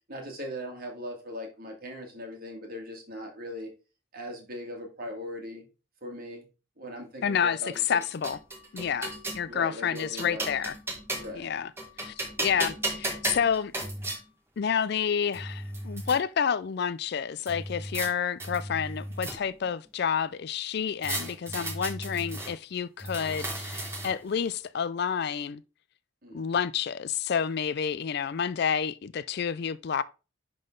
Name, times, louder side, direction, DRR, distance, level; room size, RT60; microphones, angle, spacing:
voice 1, 0.1-3.7 4.1-5.6 6.0-6.4 6.8-8.0 9.5-10.5 11.1-11.5 26.2-26.5, equal, 45° right, 2.1 m, -39 dB
voice 2, 7.2-7.6 7.9-8.4 8.7-10.7 11.3-11.7 12.0-13.7 14.6-25.6 26.3-30.0, left 7 dB, 50° left, 0.4 m, -29 dB
sound 1, 7.7-9.4 10.0-11.4 11.8-14.2 15.0-15.1 15.3-16.2 17.5-18.1 18.4-19.7 21.0-22.5 23.0-24.3, right 1 dB, 10° right, 1.6 m, -35 dB
10.5 x 3.9 x 3.8 m
head